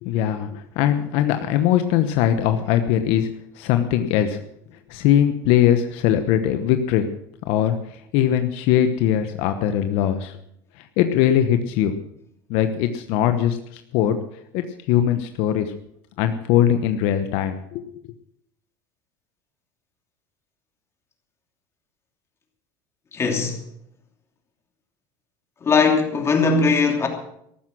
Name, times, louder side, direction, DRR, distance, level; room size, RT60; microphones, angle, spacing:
voice 1, 0.0-3.3 3.6-4.4 4.9-7.1 7.5-7.8 8.1-10.3 11.0-11.9 12.5-14.2 14.5-15.7 16.2-17.8, left 10 dB, 65° left, 1.0 m, -20 dB
voice 2, 23.1-23.6 25.6-27.1, left 4 dB, 25° left, 3.0 m, -19 dB
14.5 x 12.0 x 6.1 m
supercardioid pair, 120°, 10 cm